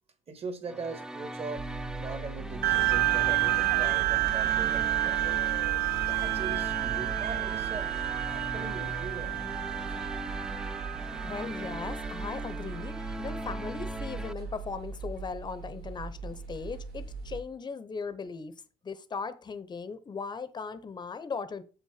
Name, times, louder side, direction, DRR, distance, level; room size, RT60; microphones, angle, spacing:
voice 1, 0.3-1.7 2.0-5.4 6.1-7.9 8.3-9.4, right 4 dB, 35° right, 1.6 m, -40 dB
sound 1, 0.6-14.3, right 1 dB, 5° right, 0.4 m, -40 dB
sound 2, 1.6-17.4, right 4 dB, 70° right, 1.8 m, -41 dB
sound 3, 2.6-13.5, right 16 dB, 85° right, 0.7 m, -30 dB
voice 2, 11.2-18.5 18.8-21.6, left 5 dB, 25° left, 0.8 m, -38 dB
7.1 x 5.7 x 4.8 m
cardioid pair, 110°, 17 cm